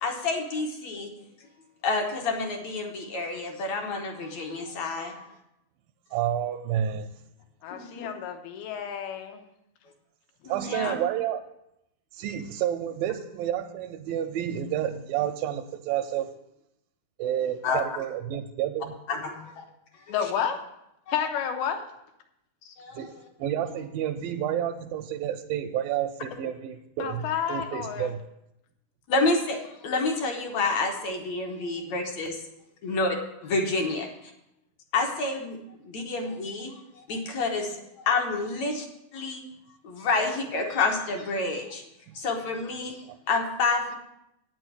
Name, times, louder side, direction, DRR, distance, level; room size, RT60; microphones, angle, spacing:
voice 1, 0.0-1.1 1.8-5.3 7.7-8.1 10.4-10.9 17.6-17.8 19.1-19.5 20.1-20.3 22.8-23.1 29.1-32.4 32.8-33.2 33.4-34.1 34.9-38.9 39.1-39.4 39.8-41.8 42.1-43.9, left 3 dB, 60° left, 2 dB, 2.0 m, -29 dB
voice 2, 6.1-7.1 10.5-11.4 12.1-16.3 17.2-19.0 23.0-23.1 23.4-28.2 42.1-42.2 43.1-43.2, right 10 dB, 80° right, 6 dB, 2.2 m, -30 dB
voice 3, 7.6-9.4 20.1-20.6 21.1-21.8 22.7-22.8 27.0-28.1, left 8 dB, 85° left, 5 dB, 3.0 m, -30 dB
9.0 x 6.2 x 7.9 m, 0.84 s
omnidirectional pair, 4.3 m